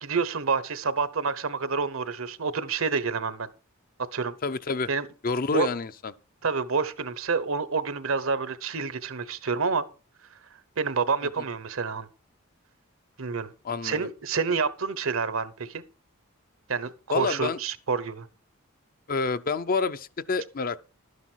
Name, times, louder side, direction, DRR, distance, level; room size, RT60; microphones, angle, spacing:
voice 1, 0.0-3.5 4.1-4.3 4.9-5.1 5.5-5.7 6.4-9.8 10.8-12.1 13.2-13.5 13.8-15.8 16.7-18.3, right 5 dB, 75° right, 1.0 m, -28 dB
voice 2, 4.4-4.9 5.2-6.1 13.6-14.1 17.1-17.6 19.1-20.8, left 4 dB, 45° left, 0.6 m, -28 dB
12.0 x 9.5 x 4.6 m
head